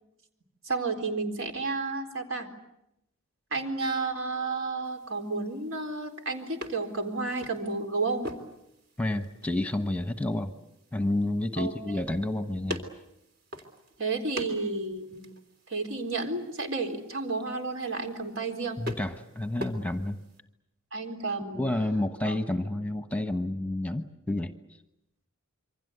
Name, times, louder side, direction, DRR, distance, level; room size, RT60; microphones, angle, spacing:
voice 1, 0.6-2.5 3.5-8.3 11.6-12.0 14.0-15.2 15.7-18.8 20.9-21.6 22.3-22.4, right 3 dB, 70° right, 4 dB, 4.0 m, -31 dB
sound 1, 4.8-20.4, left 1 dB, 50° right, 3.4 m, -45 dB
voice 2, 9.0-10.5 10.9-12.8 18.8-20.2 21.5-24.5, left 1 dB, 5° left, 8 dB, 1.1 m, -30 dB
27.5 x 24.5 x 8.1 m, 0.84 s
head